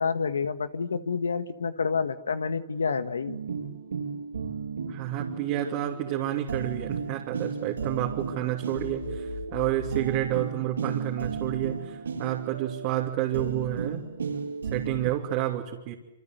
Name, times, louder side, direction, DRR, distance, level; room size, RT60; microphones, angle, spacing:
voice 1, 0.0-3.4, left 5 dB, 90° left, 11 dB, 1.6 m, -28 dB
sound 1, 3.3-15.1, right 5 dB, 85° right, 7.9 m, -35 dB
voice 2, 4.9-14.1 14.7-15.9, right 13 dB, 40° right, -1 dB, 3.1 m, -30 dB
sound 2, 8.8-10.0, left 8 dB, 70° left, 4.5 m, -39 dB
27.5 x 25.5 x 8.0 m, 0.96 s
hypercardioid pair, 135°, 0 cm